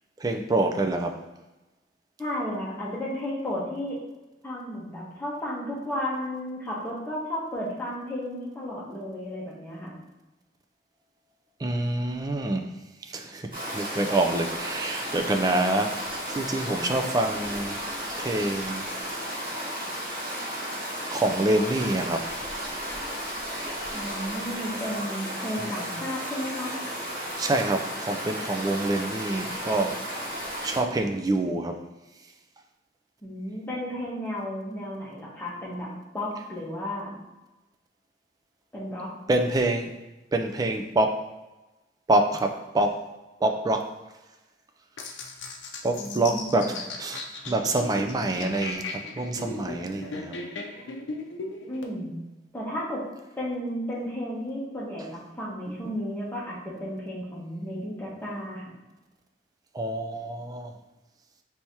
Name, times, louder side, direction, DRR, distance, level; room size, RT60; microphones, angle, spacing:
voice 1, 0.2-1.2 11.6-12.7 13.0-16.0 16.3-17.8 18.2-18.9 21.1-22.3 27.4-30.3 30.6-31.8 39.3-39.9 40.3-41.2 42.1-43.0 43.4-43.9 45.8-50.4 55.7-55.8 59.7-60.7, right 2 dB, 20° right, 5 dB, 0.3 m, -26 dB
voice 2, 2.2-4.0 4.4-9.9 23.9-26.7 33.2-35.9 36.1-37.2 38.7-39.1 46.0-46.7 51.7-52.1 52.5-53.0 53.4-58.7, equal, 10° left, -6 dB, 1.1 m, -33 dB
Stream, 13.5-30.8, equal, 50° right, 1.4 m, -34 dB
sound 1, 45.0-51.9, left 3 dB, 85° left, 0.6 m, -37 dB
4.5 x 3.4 x 2.8 m, 1.1 s
head